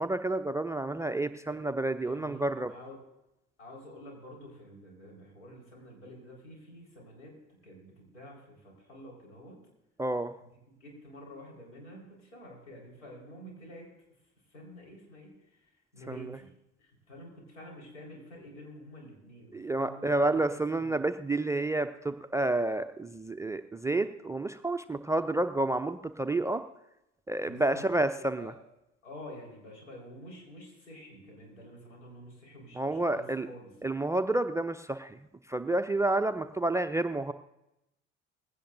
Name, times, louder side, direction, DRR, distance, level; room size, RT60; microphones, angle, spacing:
voice 1, 0.0-2.7 10.0-10.3 16.1-16.4 19.5-26.6 27.3-28.5 32.8-33.5 33.8-35.2 35.5-37.3, right 2 dB, 10° right, 12 dB, 0.4 m, -30 dB
voice 2, 2.0-2.4 2.7-3.0 3.6-9.6 10.4-10.5 10.8-13.9 14.5-16.5 16.8-21.0 27.4-27.8 28.1-28.5 29.0-33.7, equal, 75° left, -2 dB, 4.7 m, -49 dB
19.5 x 16.5 x 2.6 m, 0.88 s
figure-of-eight pair, 60°, 38 cm